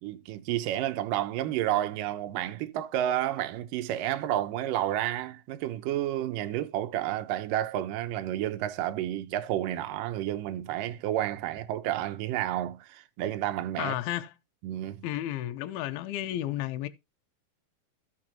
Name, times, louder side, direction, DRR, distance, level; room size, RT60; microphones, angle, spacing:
voice 1, 0.0-13.9 14.6-15.1, right 12 dB, 75° right, 2.3 m, -30 dB
voice 2, 13.8-14.3 15.0-16.9, left 14 dB, 85° left, 2.5 m, -32 dB
15.0 x 6.1 x 2.9 m
omnidirectional pair, 4.3 m